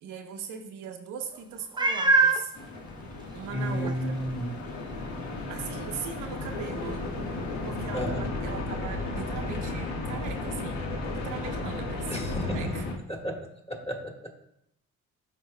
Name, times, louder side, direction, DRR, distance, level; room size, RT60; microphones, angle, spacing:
voice 1, 0.0-2.5 3.3-4.2 5.5-7.1 7.6-12.9, right 6 dB, 85° right, 5 dB, 0.8 m, -39 dB
Meow, 1.8-2.5 3.2-3.3 3.8-3.9 7.9-8.0, right 3 dB, 15° right, 0.4 m, -22 dB
sound 1, 2.5-13.0, left 2 dB, 70° left, 1.5 m, -34 dB
voice 2, 3.5-4.6 7.9-8.3 12.1-12.7 13.1-14.1, equal, 20° left, 1 dB, 1.6 m, -32 dB
12.0 x 4.5 x 2.2 m, 0.79 s
cardioid pair, 90°, 30 cm